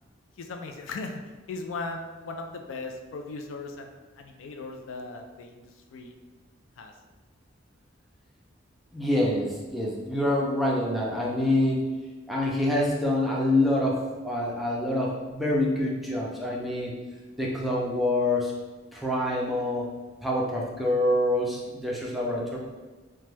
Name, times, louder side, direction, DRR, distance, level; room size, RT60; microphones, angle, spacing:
voice 1, 0.4-1.2 1.5-6.2 6.8-6.9, left 3 dB, 80° left, 4 dB, 0.4 m, -38 dB
voice 2, 8.9-11.8 12.3-16.9 17.4-18.5 18.9-19.9 20.2-22.6, left 1 dB, ahead, -4 dB, 0.4 m, -26 dB
2.9 x 2.2 x 3.2 m, 1.3 s
head